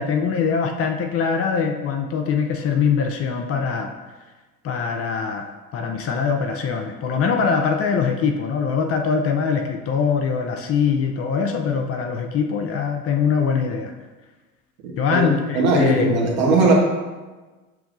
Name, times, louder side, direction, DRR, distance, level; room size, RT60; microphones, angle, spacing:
voice 1, 0.0-3.9 4.6-13.9 15.0-16.2, left 6 dB, 35° left, 4 dB, 0.5 m, -22 dB
voice 2, 14.8-15.3 15.5-16.7, right 3 dB, 70° right, -1 dB, 1.3 m, -19 dB
6.9 x 3.0 x 2.5 m, 1.2 s
hypercardioid pair, 70°, 44 cm